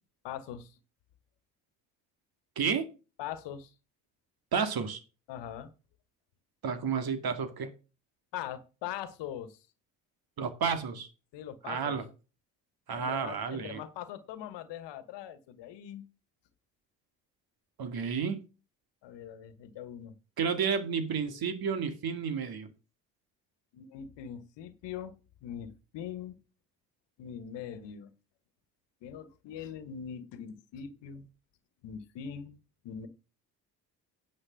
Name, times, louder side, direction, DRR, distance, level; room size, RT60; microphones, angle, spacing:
voice 1, 0.2-0.8 3.2-3.7 5.3-5.7 8.3-9.6 11.3-12.0 12.9-16.1 19.0-20.1 23.7-25.1 25.4-26.4 27.2-28.1 29.0-31.3 31.8-32.6 32.8-33.1, left 9 dB, 70° left, 1.4 m, -42 dB
voice 2, 2.6-2.9 4.5-5.0 6.6-7.7 10.4-11.1 11.6-12.1 12.9-13.8 17.8-18.4 20.4-22.7, right 6 dB, 55° right, 2.2 m, -31 dB
10.0 x 6.6 x 6.3 m
hypercardioid pair, 55°, 44 cm